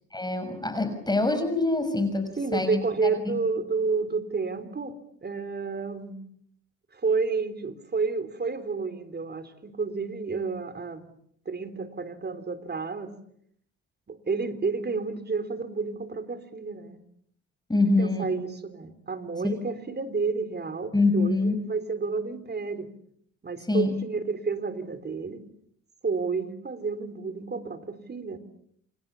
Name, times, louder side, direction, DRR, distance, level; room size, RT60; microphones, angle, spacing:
voice 1, 0.1-2.8 3.3-3.4 17.7-18.2 20.9-21.6 23.7-24.0, left 2 dB, 15° left, 9 dB, 6.1 m, -25 dB
voice 2, 2.4-6.2 6.9-11.1 11.5-13.1 14.1-17.0 18.0-22.9 23.4-25.4 26.0-28.4, right 4 dB, 35° right, 11 dB, 3.7 m, -30 dB
28.5 x 27.5 x 7.1 m, 0.69 s
cardioid pair, 90°, 30 cm